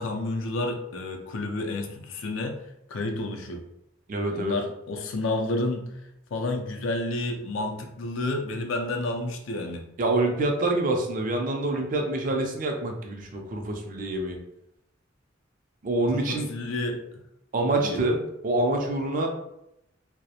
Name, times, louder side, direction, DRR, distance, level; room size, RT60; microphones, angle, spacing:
voice 1, 0.0-2.6 2.9-3.6 4.3-5.9 6.3-9.8 16.1-17.0 17.7-18.0, left 2 dB, 80° left, 3 dB, 0.4 m, -30 dB
voice 2, 4.1-4.6 10.0-14.4 15.8-16.5 17.5-19.3, right 2 dB, 45° right, 2 dB, 0.4 m, -26 dB
2.3 x 2.0 x 2.8 m, 0.80 s
head